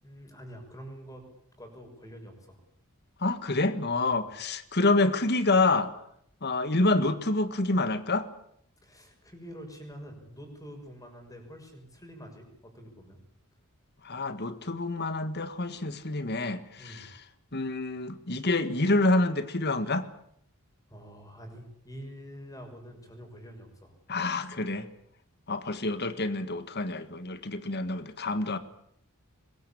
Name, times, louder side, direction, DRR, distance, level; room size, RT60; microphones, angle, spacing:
voice 1, 0.0-1.2 1.6-2.6 4.0-4.2 8.8-13.2 16.8-17.1 20.9-24.0, equal, 15° left, 3 dB, 6.5 m, -46 dB
voice 2, 3.2-5.9 6.4-8.3 14.0-17.1 17.5-20.1 24.1-24.9 25.5-28.6, left 2 dB, 50° left, 12 dB, 1.7 m, -27 dB
23.5 x 21.0 x 8.7 m, 0.70 s
head